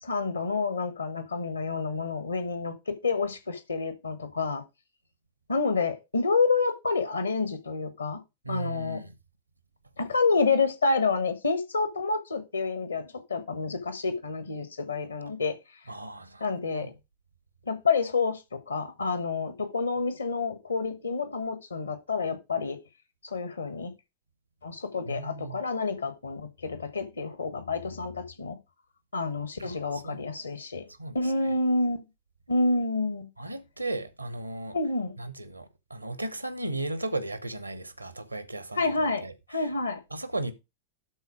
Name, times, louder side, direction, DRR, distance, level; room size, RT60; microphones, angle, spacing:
voice 1, 0.0-4.6 5.5-8.2 8.5-9.0 10.0-15.5 16.4-16.9 17.7-22.8 23.2-23.9 24.6-28.6 29.1-30.9 31.1-32.0 32.5-33.3 34.7-35.1 38.8-39.2 39.5-40.0, left 4 dB, 75° left, 1.3 m, -28 dB
voice 2, 8.4-9.1 15.9-16.9 25.1-25.6 29.6-30.2 31.0-31.3 33.4-34.8 35.2-39.7 40.1-40.5, right 2 dB, 85° right, 0.9 m, -36 dB
12.0 x 4.0 x 4.8 m
figure-of-eight pair, 90°, 0 cm